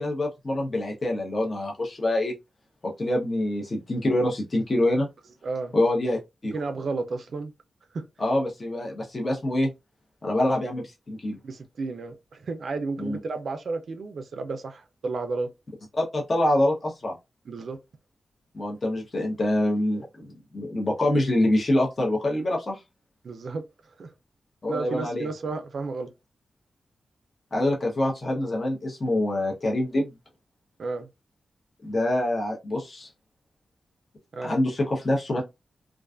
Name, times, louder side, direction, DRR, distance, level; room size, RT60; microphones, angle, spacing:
voice 1, 0.0-2.3 2.8-5.1 5.7-6.5 8.2-9.7 10.2-11.4 13.0-13.2 16.0-17.1 18.5-22.8 24.6-25.3 27.5-30.1 31.8-33.1 34.4-35.4, left 1 dB, 40° left, 0.7 m, -25 dB
voice 2, 5.4-5.7 6.5-7.5 7.9-8.0 11.4-15.5 17.5-17.8 23.2-23.6 24.0-24.1 24.7-26.1 30.8-31.1 34.3-34.5, right 3 dB, 65° right, 0.3 m, -32 dB
2.4 x 2.3 x 2.4 m
wide cardioid pair, 100°, 0 cm